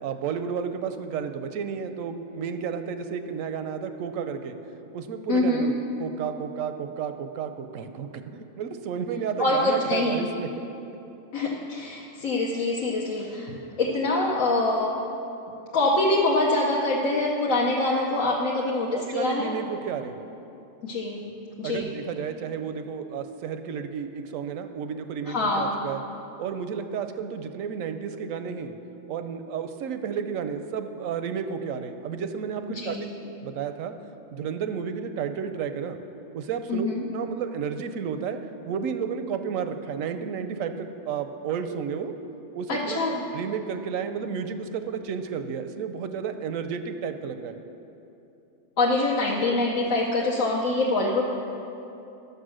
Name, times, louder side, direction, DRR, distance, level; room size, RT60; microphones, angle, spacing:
voice 1, 0.0-4.6 4.9-5.7 6.0-10.5 18.9-20.2 21.6-26.0 26.4-28.7 29.1-33.0 33.4-33.9 34.3-36.0 36.3-36.9 37.1-38.4 38.7-42.1 42.5-47.6, right 7 dB, 90° right, 8 dB, 1.0 m, -32 dB
voice 2, 5.3-5.7 9.4-10.3 11.3-14.9 15.7-19.5 20.8-21.3 21.6-21.9 25.3-25.8 32.7-33.1 36.7-37.0 42.7-43.2 48.8-51.2, left 2 dB, 85° left, -3 dB, 1.3 m, -25 dB
11.5 x 6.8 x 6.3 m, 2.9 s
omnidirectional pair, 1.3 m